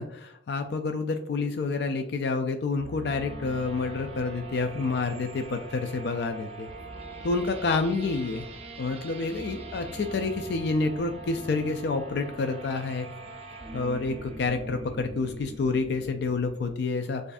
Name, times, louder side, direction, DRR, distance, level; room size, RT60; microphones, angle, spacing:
voice 1, 0.0-6.7 7.2-8.5 8.8-13.1 13.7-17.3, left 3 dB, 60° left, 6 dB, 0.3 m, -28 dB
sound 1, 2.7-16.7, right 2 dB, 30° right, 0.5 m, -42 dB
6.8 x 2.5 x 2.5 m, 0.73 s
head